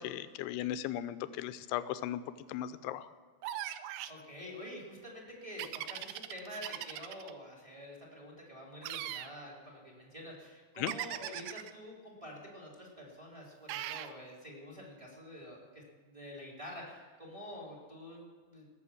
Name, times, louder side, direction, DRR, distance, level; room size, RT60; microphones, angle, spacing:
voice 1, 0.0-2.2 2.5-3.1 10.8-10.9, left 12 dB, 85° left, 13 dB, 2.6 m, -37 dB
sound 1, 3.4-4.2 5.6-7.3 8.8-9.3 10.9-11.7 13.7-14.1, right 13 dB, 85° right, 2.1 m, -40 dB
voice 2, 4.1-18.7, equal, 10° right, -3 dB, 2.3 m, -48 dB
18.5 x 7.2 x 7.1 m, 1.5 s
omnidirectional pair, 4.7 m